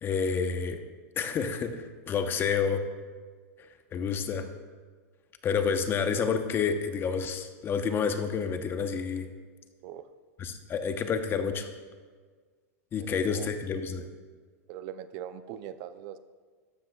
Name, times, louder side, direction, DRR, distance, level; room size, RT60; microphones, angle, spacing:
voice 1, 0.0-0.8 1.2-2.9 3.6-4.5 5.4-9.3 10.4-11.7 12.9-14.1, left 6 dB, 25° left, 7 dB, 0.9 m, -29 dB
voice 2, 13.0-13.5 14.7-16.2, right 10 dB, 45° right, 12 dB, 0.5 m, -41 dB
13.5 x 12.0 x 2.3 m, 1.5 s
hypercardioid pair, 130°, 9 cm